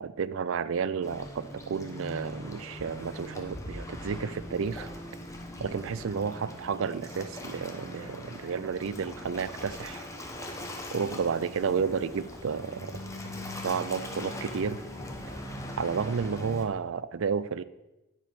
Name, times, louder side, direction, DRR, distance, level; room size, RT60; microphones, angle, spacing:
voice 1, 0.0-4.9 5.6-10.1 10.9-12.9 13.6-14.8 15.8-17.6, right 6 dB, 60° right, 16 dB, 0.4 m, -31 dB
Waves surf, 1.0-16.6, left 1 dB, 15° left, 0.9 m, -41 dB
9.5 x 5.2 x 6.0 m, 1.0 s
head